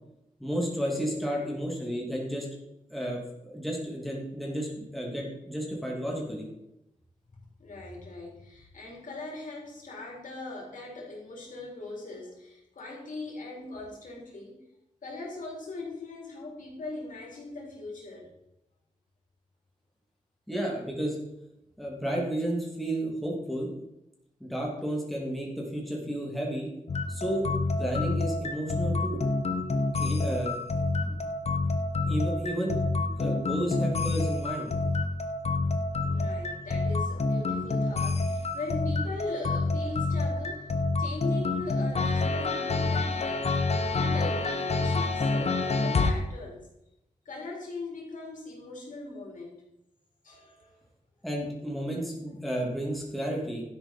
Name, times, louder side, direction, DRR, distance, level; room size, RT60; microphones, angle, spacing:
voice 1, 0.4-2.5 2.9-6.5 20.5-21.2 21.8-23.7 24.4-26.7 27.1-27.5 27.8-29.2 30.0-30.5 31.1-31.2 32.1-34.7 51.2-53.6, equal, ahead, -3 dB, 2.9 m, -32 dB
voice 2, 1.1-1.5 7.6-14.6 15.0-18.3 35.9-43.5 43.9-46.6 47.2-49.5 50.2-50.8, left 3 dB, 75° left, -2 dB, 4.4 m, -40 dB
sound 1, 26.9-46.1, left 3 dB, 50° left, 1.2 m, -28 dB
12.0 x 10.5 x 4.6 m, 0.86 s
wide cardioid pair, 165°, 14 cm